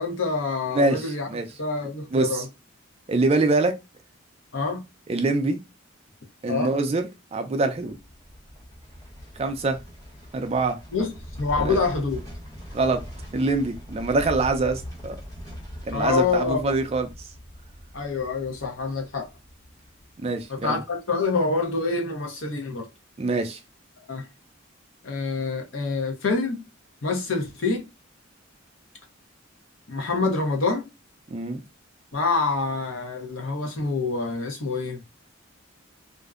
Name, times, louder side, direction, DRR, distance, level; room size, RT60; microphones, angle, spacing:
voice 1, 0.0-1.3 1.6-2.5 4.5-4.8 6.5-6.7 10.9-11.1 11.4-12.2 15.9-16.8 17.9-19.3 20.5-22.9 24.1-24.3 25.0-26.6 27.0-27.8 29.9-30.9 32.1-35.0, left 4 dB, 75° left, 0.7 m, -26 dB
voice 2, 0.7-1.4 2.1-2.4 3.1-3.7 5.1-5.6 6.4-8.0 9.4-9.8 10.3-10.8 11.6-11.8 12.7-13.0 13.3-15.2 15.9-17.1 20.2-20.8 23.2-23.6 31.3-31.6, right 3 dB, 30° right, 0.3 m, -24 dB
sound 1, 7.9-20.9 21.2-21.3, equal, 15° left, 0.9 m, -41 dB
2.5 x 2.1 x 2.4 m
head